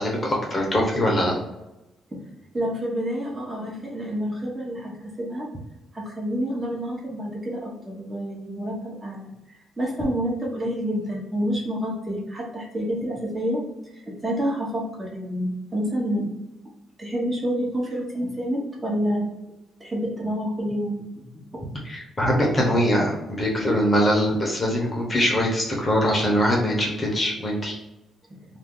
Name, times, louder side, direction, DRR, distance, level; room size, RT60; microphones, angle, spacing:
voice 1, 0.0-1.4 21.8-27.8, equal, 30° left, -1 dB, 0.9 m, -22 dB
voice 2, 2.5-5.5 5.9-13.6 13.9-16.3 17.0-19.3 19.8-21.2, equal, 20° right, -4 dB, 1.0 m, -28 dB
2.5 x 2.2 x 3.6 m, 0.96 s
cardioid pair, 90°, 0 cm